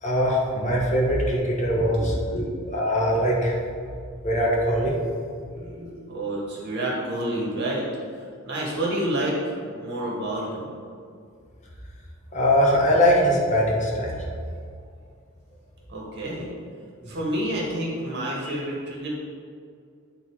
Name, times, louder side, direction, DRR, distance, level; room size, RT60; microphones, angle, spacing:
voice 1, 0.0-2.2 2.7-3.5 4.2-4.9 12.3-14.2 17.0-17.1 18.5-18.6, equal, 35° left, -3 dB, 1.3 m, -21 dB
voice 2, 1.7-2.8 5.5-7.9 8.4-10.7 15.9-16.5 17.1-19.1, right 1 dB, 55° right, -4 dB, 1.8 m, -29 dB
9.2 x 4.0 x 4.8 m, 2.2 s
head